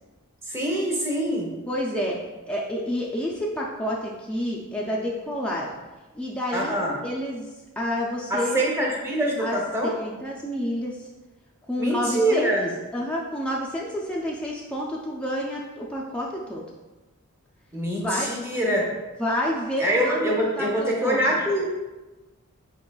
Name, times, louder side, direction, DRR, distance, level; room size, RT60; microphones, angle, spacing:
voice 1, 0.5-1.5 6.5-7.0 8.3-9.9 11.8-12.7 17.7-18.8 19.8-21.7, right 1 dB, 10° right, -3 dB, 0.7 m, -24 dB
voice 2, 1.7-2.2 2.5-5.7 6.1-6.7 7.0-7.5 7.8-8.6 9.4-11.0 11.7-16.6 18.0-18.3 19.2-21.4, left 1 dB, 5° left, -4 dB, 0.3 m, -29 dB
4.9 x 3.7 x 2.3 m, 1.2 s
head